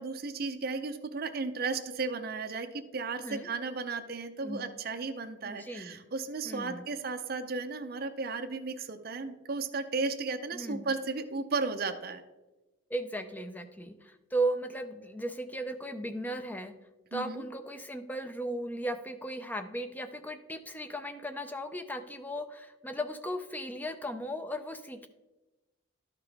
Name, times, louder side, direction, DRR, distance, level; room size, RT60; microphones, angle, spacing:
voice 1, 0.0-12.2 17.1-17.4, right 4 dB, 45° right, 6 dB, 0.5 m, -34 dB
voice 2, 5.4-6.0 6.4-6.9 10.5-10.9 12.9-16.7 17.1-25.1, right 1 dB, 10° left, 9 dB, 0.4 m, -36 dB
12.0 x 5.8 x 3.4 m, 1.1 s
head